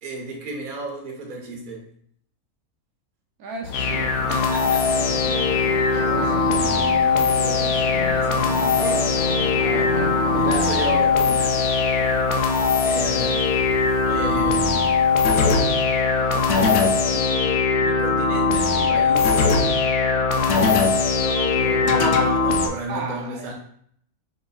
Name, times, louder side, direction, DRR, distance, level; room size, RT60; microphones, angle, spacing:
voice 1, 0.0-1.9 4.3-5.0 6.0-6.9 8.1-8.8 9.4-10.0 10.4-11.6 12.8-13.5 14.0-14.9 17.0-17.5 17.8-19.4 21.1-23.5, right 1 dB, 35° right, -1 dB, 1.0 m, -33 dB
voice 2, 3.4-4.3 5.0-5.4 6.1-8.2 8.8-9.1 10.0-10.7 22.9-23.5, right 4 dB, 75° right, 0 dB, 1.2 m, -34 dB
sound 1, 3.6-17.1, left 3 dB, 65° left, 0.8 m, -35 dB
sound 2, 3.7-22.7, left 4 dB, 80° left, 1.1 m, -20 dB
6.7 x 3.0 x 2.3 m, 0.66 s
omnidirectional pair, 1.6 m